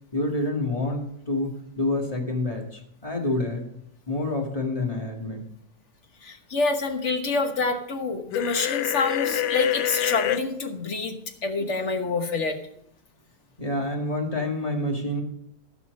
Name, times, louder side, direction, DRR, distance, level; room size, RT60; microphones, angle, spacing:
voice 1, 0.1-3.7 4.1-5.4 13.6-15.2, left 2 dB, 20° left, 0 dB, 2.0 m, -28 dB
voice 2, 6.2-11.2 11.4-12.6, left 3 dB, 45° left, 5 dB, 1.4 m, -27 dB
sound 1, 8.3-10.4, left 12 dB, 85° left, 1.2 m, -26 dB
16.0 x 6.1 x 5.3 m, 0.71 s
omnidirectional pair, 1.8 m